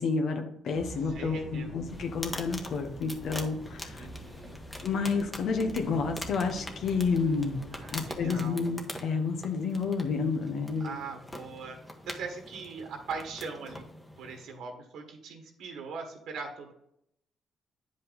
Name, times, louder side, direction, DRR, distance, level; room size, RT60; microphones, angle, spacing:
voice 1, 0.0-4.1 4.8-7.6 7.9-10.9, left 4 dB, 70° left, 5 dB, 1.0 m, -30 dB
sound 1, 0.7-8.3, left 1 dB, 50° left, 2.5 m, -46 dB
voice 2, 1.0-1.7 4.0-4.6 7.7-8.7 10.8-11.8 12.0-13.9 14.2-16.7, right 4 dB, 80° right, 3 dB, 1.5 m, -40 dB
sound 2, 1.9-14.5, left 1 dB, 15° left, 1.3 m, -44 dB
9.5 x 5.4 x 4.0 m, 0.74 s
cardioid pair, 90°, 0 cm